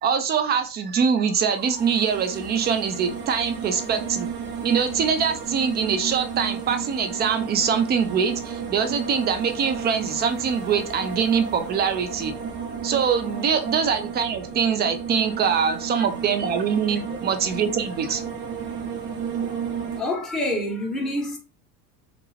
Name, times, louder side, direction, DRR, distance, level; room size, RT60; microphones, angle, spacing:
voice 1, 0.0-4.3 4.6-12.3 12.8-18.2, right 6 dB, 25° right, 0.3 m, -23 dB
sound 1, 1.3-20.0, right 6 dB, 40° right, 0.9 m, -33 dB
voice 2, 15.7-16.1 19.4-19.6 19.9-21.4, left 1 dB, ahead, 0.8 m, -28 dB
2.4 x 2.2 x 3.1 m
hypercardioid pair, 70°, 49 cm